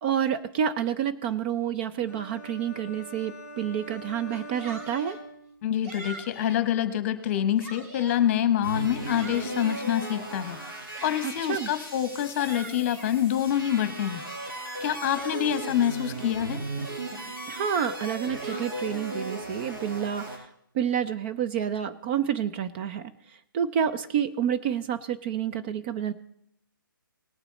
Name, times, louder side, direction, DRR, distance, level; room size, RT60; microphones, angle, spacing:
voice 1, 0.0-5.2 11.2-11.7 17.5-20.3 20.7-23.1 23.5-26.1, right 8 dB, 30° right, 10 dB, 0.5 m, -29 dB
sound 1, 2.1-6.0, right 1 dB, 10° right, 3.0 m, -44 dB
Yell, 4.2-5.2 5.8-6.6 7.2-8.2 8.7-9.9 10.6-11.6 12.1-13.2 13.7-15.8 16.4-16.5 16.8-17.2 18.0-19.1, right 2 dB, 45° right, 2.8 m, -45 dB
voice 2, 5.6-10.6 11.0-14.2 14.8-16.6, left 10 dB, 35° left, 12 dB, 1.1 m, -26 dB
sound 2, 8.6-20.4, right 2 dB, 75° right, 5.4 m, -36 dB
19.0 x 6.9 x 4.1 m, 0.72 s
figure-of-eight pair, 140°, 12 cm